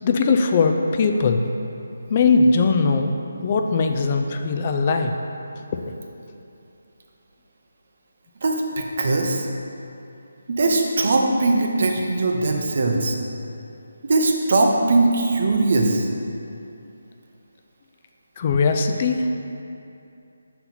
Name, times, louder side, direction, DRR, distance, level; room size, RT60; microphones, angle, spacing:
voice 1, 0.0-1.4 2.1-3.1 3.4-5.2 5.7-5.9 18.4-19.2, left 4 dB, 30° left, 5 dB, 0.3 m, -20 dB
voice 2, 8.4-9.5 10.5-13.2 14.0-16.1, right 2 dB, 50° right, 1 dB, 0.6 m, -20 dB
5.7 x 4.3 x 4.0 m, 2.7 s
hypercardioid pair, 170°, 0 cm